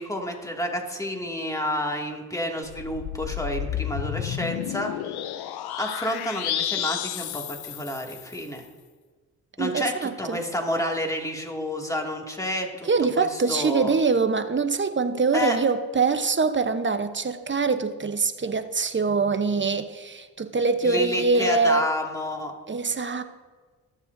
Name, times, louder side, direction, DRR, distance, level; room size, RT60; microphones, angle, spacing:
voice 1, 0.0-4.9 5.8-8.7 9.6-12.9 13.2-13.9 15.3-15.6 20.8-22.5, left 1 dB, 10° left, 2.3 m, -29 dB
sound 1, 2.7-8.5, left 11 dB, 70° left, 0.6 m, -31 dB
voice 2, 9.6-10.4 12.8-21.8 22.7-23.2, right 4 dB, 30° right, 0.9 m, -24 dB
20.0 x 7.6 x 2.7 m
supercardioid pair, 50°, 40 cm